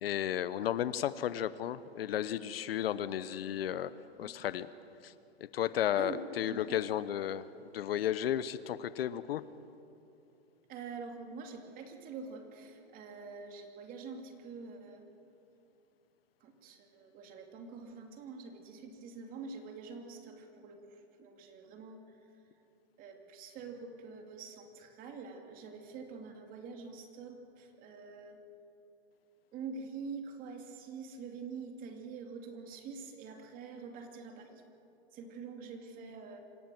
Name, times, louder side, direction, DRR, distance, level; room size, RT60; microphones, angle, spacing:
voice 1, 0.0-3.9 4.2-4.7 5.0-5.1 5.5-7.5 7.7-9.4, left 11 dB, 65° left, 16 dB, 0.8 m, -33 dB
voice 2, 6.5-6.8 10.7-15.1 16.4-22.0 23.0-28.4 29.5-34.6 35.1-36.4, right 5 dB, 25° right, 4 dB, 2.6 m, -46 dB
26.5 x 16.5 x 7.7 m, 2.8 s
hypercardioid pair, 145°, 32 cm